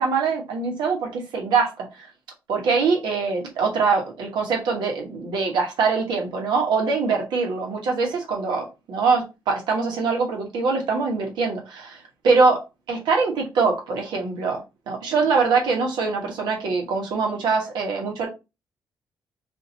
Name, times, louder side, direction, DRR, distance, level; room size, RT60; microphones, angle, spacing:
voice 1, 0.0-1.7 2.0-2.1 2.5-12.0 12.2-12.6 12.9-14.6 14.9-18.3, right 4 dB, 80° right, 1.3 m, -23 dB
2.8 x 2.8 x 3.9 m
cardioid pair, 70°, 8 cm